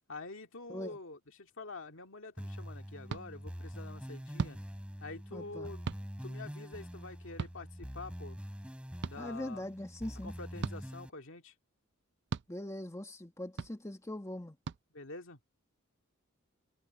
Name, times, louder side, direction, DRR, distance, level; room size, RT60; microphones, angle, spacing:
voice 1, 0.1-4.6 5.0-8.4 9.0-9.7 10.2-11.5 14.9-15.4, left 3 dB, 65° left, 2.2 m, -47 dB
sound 1, 2.4-11.1, equal, 5° right, 3.5 m, -45 dB
sound 2, 3.1-3.2 4.4-4.6 5.9-6.0 7.4-7.6 9.0-9.1 10.6-10.8 12.3-12.5 13.6-13.7 14.6-14.8, right 5 dB, 55° right, 0.5 m, -36 dB
voice 2, 5.3-5.7 9.2-10.3 12.5-14.6, left 1 dB, 15° left, 1.6 m, -41 dB
head